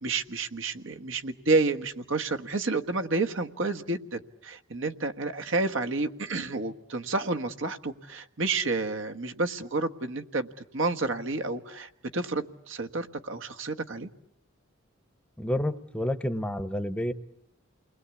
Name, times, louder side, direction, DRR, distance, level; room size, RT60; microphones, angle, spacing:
voice 1, 0.0-10.5 10.7-14.1, right 3 dB, 65° right, 5 dB, 1.4 m, -30 dB
voice 2, 15.4-17.1, left 1 dB, 5° left, 11 dB, 0.9 m, -29 dB
29.5 x 21.0 x 8.4 m, 0.79 s
head